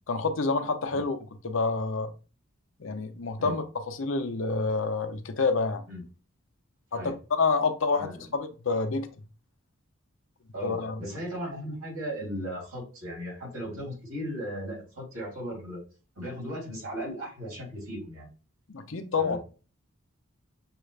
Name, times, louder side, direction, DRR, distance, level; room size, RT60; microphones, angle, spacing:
voice 1, 0.1-1.2 1.4-2.1 2.8-5.8 6.9-9.1 10.6-11.0 18.7-19.4, left 4 dB, 65° left, 7 dB, 0.6 m, -28 dB
voice 2, 10.5-15.8 16.2-18.3 19.2-19.4, equal, 85° right, -3 dB, 2.8 m, -36 dB
6.5 x 2.4 x 3.3 m, 0.34 s
head